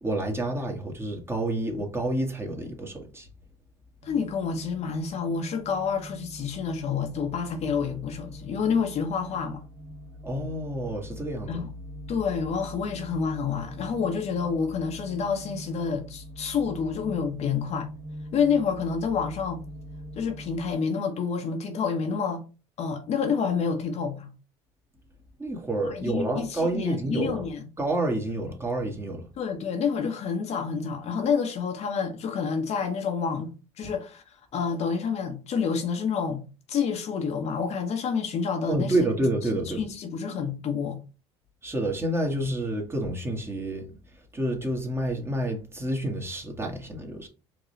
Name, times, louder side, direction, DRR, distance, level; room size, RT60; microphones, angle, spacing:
voice 1, 0.0-3.3 10.2-11.6 25.4-27.4 27.8-29.3 38.7-39.8 41.6-43.9 44.3-47.3, right 1 dB, 15° right, 1.6 m, -29 dB
voice 2, 4.0-9.6 11.5-11.7 12.1-17.9 18.3-19.6 20.2-22.4 22.8-24.3 25.8-27.7 29.4-33.5 33.8-36.4 36.7-38.9 39.8-41.0, left 6 dB, 50° left, 1.1 m, -28 dB
sound 1, 4.0-20.7, equal, 70° right, 1.7 m, -42 dB
4.9 x 3.0 x 3.2 m
hypercardioid pair, 70°, 14 cm